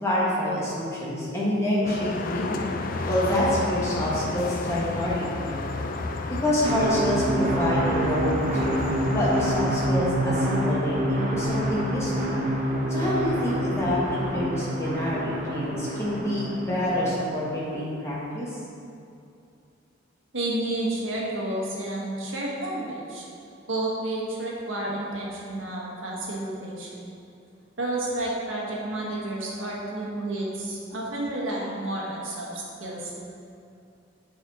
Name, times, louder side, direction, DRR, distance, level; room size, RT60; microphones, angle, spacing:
voice 1, 0.0-2.7 3.1-5.7 6.4-12.4 12.9-18.6, left 1 dB, 15° left, -7 dB, 1.3 m, -27 dB
sound 1, 1.8-9.9, left 3 dB, 45° left, 0.4 m, -32 dB
sound 2, 6.6-17.8, right 1 dB, 40° right, 0.8 m, -27 dB
voice 2, 20.3-23.2 23.7-26.9 27.8-33.2, right 1 dB, 80° right, -4 dB, 1.4 m, -31 dB
6.9 x 4.3 x 4.1 m, 2.5 s
head